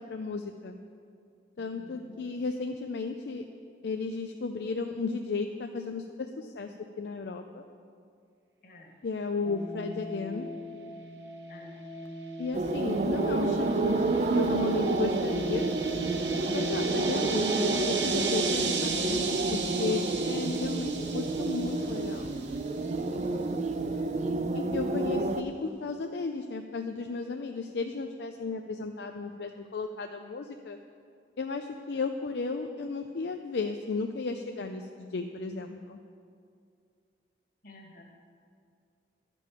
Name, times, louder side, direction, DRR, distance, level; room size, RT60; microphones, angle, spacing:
voice 1, 0.1-0.8 1.6-3.5 3.8-7.6 9.0-10.5 12.4-15.7 16.5-22.3 24.5-30.8 31.4-36.0, left 4 dB, 70° left, 5 dB, 0.4 m, -34 dB
voice 2, 1.6-2.2 8.6-8.9 11.5-11.8 37.6-38.0, left 1 dB, 50° left, 0 dB, 1.5 m, -52 dB
sound 1, 9.4-18.1, left 1 dB, 20° left, 0.7 m, -41 dB
sound 2, 12.5-25.4, right 2 dB, 40° right, 0.4 m, -29 dB
sound 3, 12.9-22.7, right 6 dB, 85° right, 0.9 m, -36 dB
11.0 x 5.3 x 7.5 m, 2.3 s
head